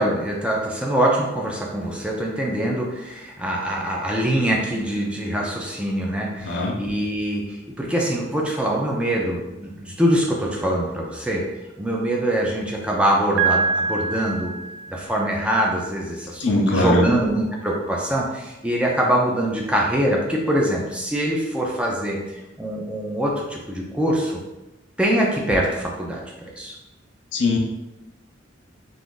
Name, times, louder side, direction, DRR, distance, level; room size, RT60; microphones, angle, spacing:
voice 1, 0.0-11.4 11.8-14.5 14.9-22.2 22.6-24.4 25.0-26.7, right 1 dB, 5° right, -2 dB, 0.4 m, -23 dB
voice 2, 6.4-6.8 16.4-17.0 27.3-27.6, left 2 dB, 70° left, 2 dB, 0.5 m, -21 dB
Piano, 13.4-15.3, right 5 dB, 85° right, 0.3 m, -24 dB
2.6 x 2.4 x 3.7 m, 1.0 s
head